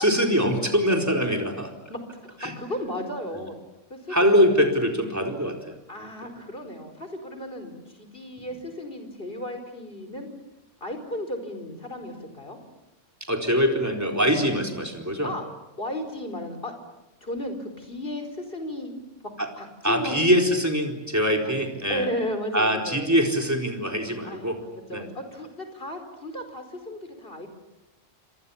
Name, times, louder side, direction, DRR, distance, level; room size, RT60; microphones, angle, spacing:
voice 1, 0.0-1.7 2.4-2.5 3.3-3.4 4.1-5.8 8.4-8.5 13.3-15.3 19.4-19.5 19.8-22.1 22.5-24.6 24.9-25.0, equal, 15° right, 2 dB, 4.3 m, -23 dB
voice 2, 2.3-3.6 3.9-4.4 5.9-10.3 10.8-12.6 15.2-15.4 15.8-16.7 17.2-18.9 19.6-20.3 21.4-21.5 21.9-23.1 24.2-27.5, left 1 dB, 50° left, 6 dB, 5.0 m, -34 dB
29.5 x 26.0 x 7.2 m, 0.96 s
omnidirectional pair, 1.3 m